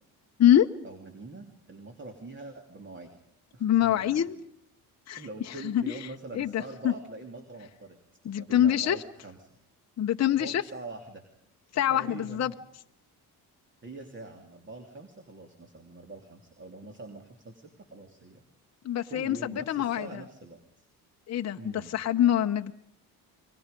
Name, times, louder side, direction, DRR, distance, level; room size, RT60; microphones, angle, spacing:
voice 1, 0.8-3.1 3.5-4.3 5.2-8.0 8.3-9.4 10.4-11.2 11.9-12.6 13.8-18.4 19.1-20.9 21.6-21.9, right 2 dB, 30° right, 5 dB, 3.0 m, -44 dB
voice 2, 3.6-4.4 5.1-5.2 5.6-6.0 6.3-6.9 8.2-9.0 10.0-10.6 11.7-12.5 18.8-20.2 21.3-22.7, left 11 dB, 40° left, 5 dB, 0.9 m, -25 dB
30.0 x 23.0 x 5.3 m, 0.73 s
cardioid pair, 120°, 39 cm